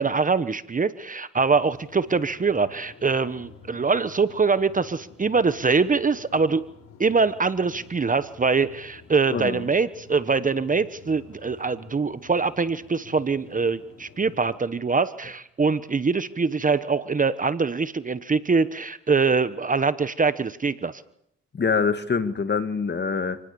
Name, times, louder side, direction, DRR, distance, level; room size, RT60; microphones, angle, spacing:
voice 1, 0.0-6.6 7.0-21.0, right 4 dB, 25° right, 13 dB, 1.1 m, -23 dB
sound 1, 1.4-14.6, left 6 dB, 60° left, 6.7 m, -50 dB
voice 2, 9.3-9.6 21.5-23.4, left 5 dB, 35° left, 10 dB, 2.1 m, -25 dB
27.5 x 20.0 x 7.0 m, 0.71 s
cardioid pair, 90°, 30 cm